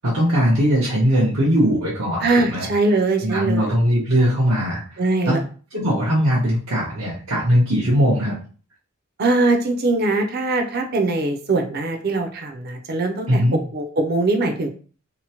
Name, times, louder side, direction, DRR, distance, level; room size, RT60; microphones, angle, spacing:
voice 1, 0.0-2.7 3.2-4.8 5.3-5.4 5.7-8.3 13.3-13.6, equal, 90° right, -7 dB, 0.9 m, -19 dB
voice 2, 2.2-3.8 5.0-5.4 9.2-13.4 13.7-14.7, right 2 dB, 45° right, 4 dB, 0.5 m, -21 dB
2.9 x 2.0 x 2.8 m, 0.40 s
head